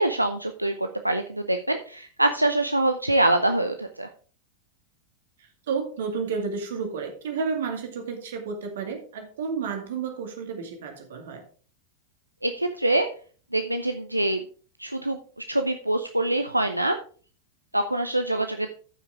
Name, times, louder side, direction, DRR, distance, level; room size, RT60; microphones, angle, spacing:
voice 1, 0.0-4.1 12.4-13.1 13.5-14.4 14.8-15.2 15.5-17.0 17.7-18.7, right 1 dB, 85° right, 6 dB, 0.6 m, -24 dB
voice 2, 5.4-11.4, right 5 dB, 60° right, 4 dB, 2.3 m, -31 dB
14.0 x 5.8 x 3.7 m, 0.42 s
figure-of-eight pair, 90°, 0 cm